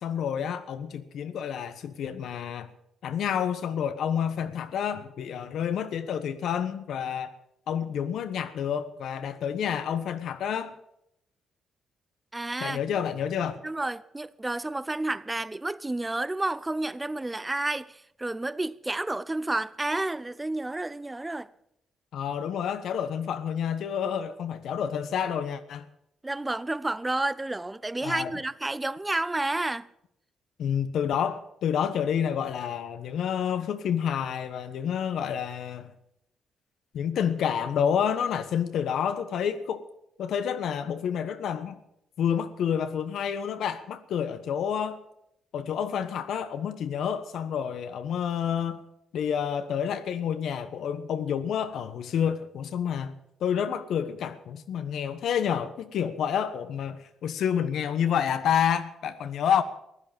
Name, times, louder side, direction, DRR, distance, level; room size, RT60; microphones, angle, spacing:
voice 1, 0.0-2.7 3.0-7.3 7.7-10.7 12.6-13.6 22.1-25.8 28.0-28.3 30.6-35.9 36.9-39.8 40.2-41.8 42.2-45.0 45.5-48.8 49.1-59.6, left 8 dB, 70° left, 1.2 m, -29 dB
voice 2, 12.3-12.8 13.6-21.5 26.2-29.9, right 2 dB, 15° right, 0.6 m, -30 dB
15.5 x 11.0 x 7.4 m
cardioid pair, 90°, 0 cm